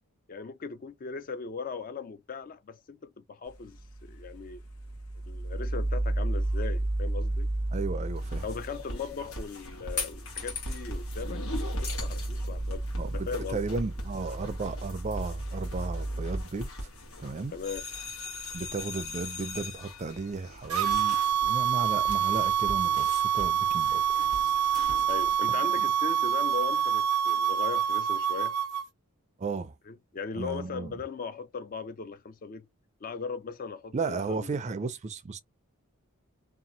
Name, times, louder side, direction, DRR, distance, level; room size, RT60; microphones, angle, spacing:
voice 1, 0.3-3.8 4.1-4.6 5.3-7.5 8.4-12.9 13.1-13.6 17.5-17.8 25.0-28.5 29.9-32.7 33.0-34.5, left 5 dB, 40° left, 0.4 m, -38 dB
sound 1, 3.5-16.4, right 1 dB, 90° left, 1.0 m, -33 dB
voice 2, 7.7-8.5 13.0-16.9 17.2-17.5 18.5-24.3 25.5-25.8 29.4-29.7 30.4-30.9 33.9-35.4, right 4 dB, 30° right, 0.4 m, -34 dB
sound 2, 8.1-25.4, left 2 dB, 70° left, 1.3 m, -40 dB
sound 3, 20.7-28.9, right 9 dB, 90° right, 0.5 m, -26 dB
2.8 x 2.4 x 2.6 m
head